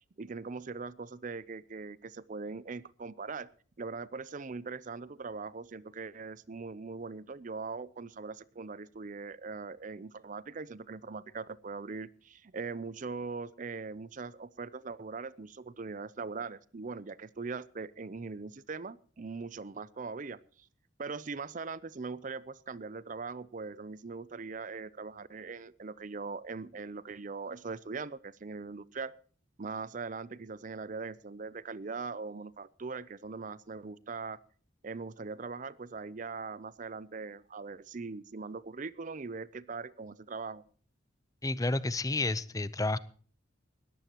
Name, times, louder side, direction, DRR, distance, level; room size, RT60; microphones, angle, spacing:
voice 1, 0.2-3.5 3.8-20.7 21.0-29.1 29.6-34.4 34.8-40.6, right 4 dB, 40° right, 19 dB, 0.5 m, -41 dB
voice 2, 41.4-43.0, left 2 dB, 20° left, 17 dB, 0.6 m, -30 dB
19.5 x 14.5 x 2.9 m, 0.44 s
head